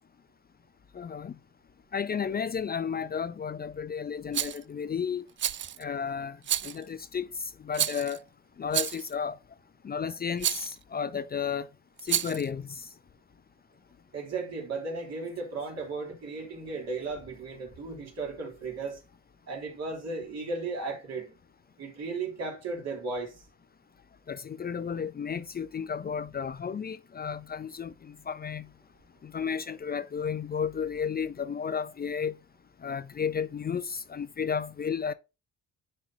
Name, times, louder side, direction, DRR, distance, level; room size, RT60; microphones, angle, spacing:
voice 1, 0.9-1.3 1.9-5.3 5.8-8.2 8.6-9.4 9.8-11.7 12.0-12.9 24.3-28.7 29.2-32.3 32.8-35.1, left 6 dB, 30° left, 0.5 m, -33 dB
Rattle, 4.3-4.6 5.4-5.8 6.4-6.8 7.7-8.2 8.7-9.1 10.4-10.7 12.0-12.5, right 10 dB, 40° right, 0.4 m, -30 dB
voice 2, 14.1-19.0 19.5-21.3 21.8-23.4, right 3 dB, 60° right, 3.2 m, -35 dB
10.0 x 4.4 x 2.7 m
cardioid pair, 90°, 30 cm